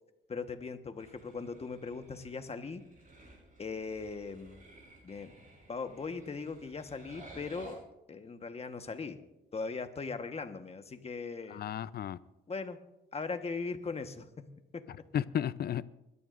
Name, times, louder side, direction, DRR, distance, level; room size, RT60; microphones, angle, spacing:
voice 1, 0.3-2.8 3.6-4.6 5.0-5.3 5.7-7.8 8.1-9.2 9.5-11.6 12.5-12.8 13.1-14.9, left 4 dB, 30° left, 1.3 m, -39 dB
sound 1, 1.0-7.7, right 2 dB, 45° right, 6.1 m, -55 dB
voice 2, 11.5-12.2 14.9-15.8, left 9 dB, 50° left, 0.6 m, -34 dB
24.5 x 12.5 x 2.6 m
cardioid pair, 90°, 20 cm